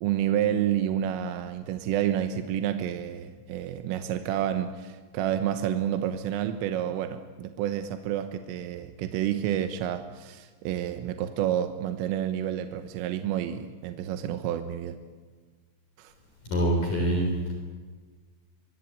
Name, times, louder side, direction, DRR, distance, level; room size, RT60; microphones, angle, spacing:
voice 1, 0.0-15.0 16.0-16.1, right 10 dB, 85° right, 8 dB, 3.7 m, -29 dB
voice 2, 16.5-17.5, right 1 dB, 45° left, 2 dB, 5.1 m, -25 dB
25.0 x 24.0 x 8.6 m, 1.4 s
omnidirectional pair, 5.8 m